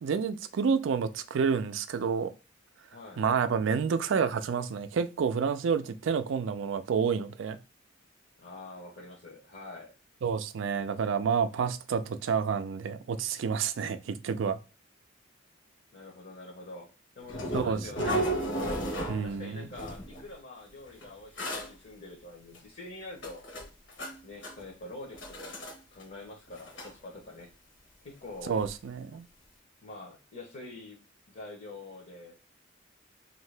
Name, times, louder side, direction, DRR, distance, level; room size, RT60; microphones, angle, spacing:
voice 1, 0.0-2.3 3.2-7.6 10.2-14.6 17.5-18.2 19.1-19.6 28.5-29.2, right 6 dB, 70° right, 0.4 m, -29 dB
voice 2, 2.9-3.2 8.4-9.9 15.9-18.3 19.2-23.5 24.2-27.5 28.0-28.6 29.8-31.0 31.3-32.3, left 2 dB, 50° left, 0.8 m, -45 dB
sound 1, 17.3-19.4 19.7-20.2 21.0-21.1 21.4-21.7 22.5-22.6 23.1-24.2 24.4-24.7 25.1-25.7 26.0-26.1 26.5-26.9 28.6-28.7 29.1-29.2, right 1 dB, 70° left, 1.1 m, -34 dB
2.7 x 2.6 x 3.2 m
head